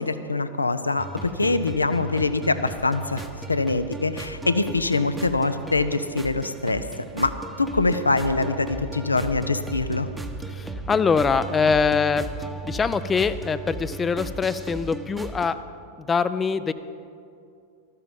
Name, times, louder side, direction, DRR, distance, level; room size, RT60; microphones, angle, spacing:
voice 1, 0.0-6.9 7.1-7.3 7.6-10.1, left 3 dB, 80° left, 11 dB, 0.6 m, -24 dB
sound 1, 1.0-15.6, right 3 dB, 10° right, 0.9 m, -36 dB
voice 2, 10.5-12.3 12.6-15.6 16.0-16.7, left 5 dB, 20° left, 14 dB, 0.4 m, -23 dB
14.0 x 13.0 x 5.3 m, 2.5 s
figure-of-eight pair, 90°, 0 cm